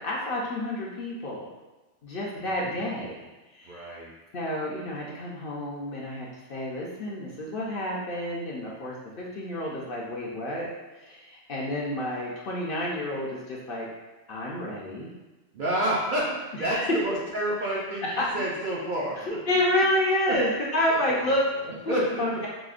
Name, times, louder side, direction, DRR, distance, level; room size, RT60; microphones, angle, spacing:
voice 1, 0.0-1.5 2.0-3.1 3.5-4.0 4.3-10.7 11.0-13.9 14.3-15.1 16.7-17.0 18.2-18.4 19.5-21.5 21.8-22.5, left 1 dB, 55° left, -4 dB, 0.7 m, -29 dB
voice 2, 3.6-4.1 15.5-19.4 20.3-20.4 20.9-21.2 21.7-22.2, right 1 dB, 60° right, -5 dB, 0.5 m, -29 dB
4.9 x 2.1 x 2.4 m, 1.1 s
omnidirectional pair, 1.2 m